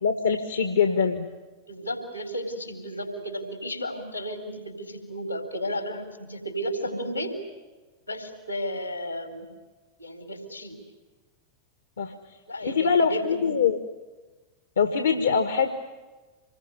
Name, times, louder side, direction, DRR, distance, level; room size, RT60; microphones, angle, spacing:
voice 1, 0.0-1.3 12.0-12.1 12.6-13.8 14.8-15.7, left 6 dB, 70° left, 8 dB, 1.5 m, -23 dB
voice 2, 1.6-7.4 8.1-9.5 10.0-10.8 12.5-13.5, equal, 85° left, 6 dB, 4.1 m, -33 dB
26.5 x 21.0 x 9.6 m, 1.3 s
figure-of-eight pair, 90°, 0 cm